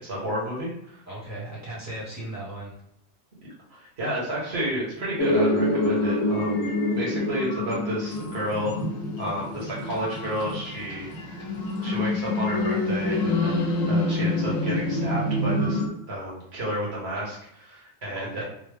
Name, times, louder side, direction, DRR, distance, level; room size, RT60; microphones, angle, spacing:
voice 1, 0.0-1.0 3.7-8.8 9.2-11.1 11.8-13.6 13.9-15.8 16.1-18.4, equal, 55° right, -5 dB, 1.5 m, -31 dB
voice 2, 1.1-2.8 18.1-18.4, right 1 dB, 15° right, -6 dB, 1.0 m, -37 dB
sound 1, 4.9-14.4, right 1 dB, 40° left, 1.0 m, -42 dB
sound 2, 5.2-15.9, left 2 dB, 80° left, 1.1 m, -26 dB
3.7 x 2.1 x 3.3 m, 0.74 s
omnidirectional pair, 1.3 m